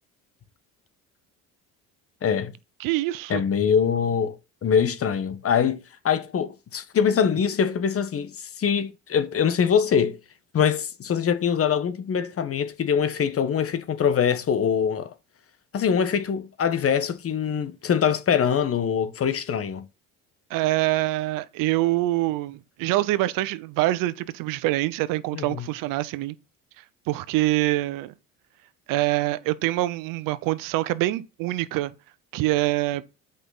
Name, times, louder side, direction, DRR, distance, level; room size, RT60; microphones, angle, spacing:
voice 1, 2.2-2.5 3.3-4.4 4.6-10.2 10.5-15.1 15.7-19.8 25.3-25.7, left 7 dB, 45° left, 1.3 m, -23 dB
voice 2, 2.8-3.4 20.5-26.3 27.1-28.1 28.9-31.9 32.3-33.0, right 17 dB, 75° right, 0.9 m, -25 dB
8.4 x 5.4 x 4.2 m
supercardioid pair, 85°, 33 cm